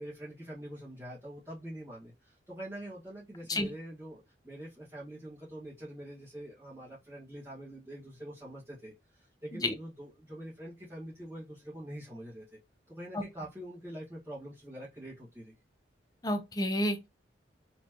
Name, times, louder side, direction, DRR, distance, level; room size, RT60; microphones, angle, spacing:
voice 1, 0.0-12.6 12.9-15.5, right 1 dB, 15° right, 1.6 m, -45 dB
voice 2, 16.2-17.1, left 1 dB, 20° left, 0.6 m, -30 dB
4.2 x 3.2 x 2.9 m
head